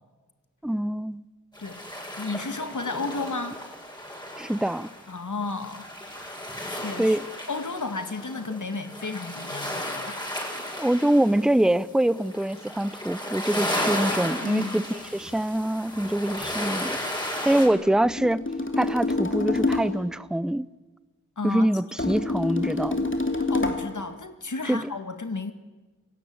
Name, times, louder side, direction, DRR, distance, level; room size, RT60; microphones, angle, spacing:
voice 1, 0.6-1.2 4.4-4.9 7.0-7.3 10.7-17.0 17.4-18.4 18.8-20.7 21.4-23.1 24.7-24.9, right 1 dB, ahead, 0.7 m, -24 dB
sound 1, 1.5-17.7, equal, 15° left, 7.2 m, -34 dB
voice 2, 2.2-3.6 5.1-5.9 6.7-7.2 7.5-10.3 14.4-14.8 17.5-17.6 21.4-21.7 23.5-25.5, left 3 dB, 80° left, 2.0 m, -32 dB
sound 2, 18.0-20.1 22.0-24.0, left 3 dB, 40° left, 2.9 m, -27 dB
28.0 x 17.5 x 8.8 m
wide cardioid pair, 50°, 30 cm